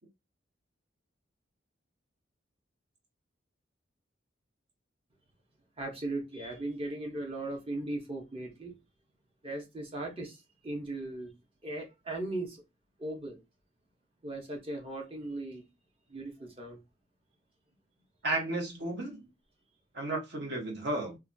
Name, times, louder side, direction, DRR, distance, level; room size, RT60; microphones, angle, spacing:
voice 1, 5.8-8.8 9.4-11.3 11.6-12.6 13.0-13.4 14.2-15.6 16.1-16.8, right 2 dB, 30° right, 0.8 m, -38 dB
voice 2, 18.2-19.2 19.9-21.2, right 2 dB, 60° right, 1.0 m, -33 dB
2.7 x 2.3 x 2.6 m
head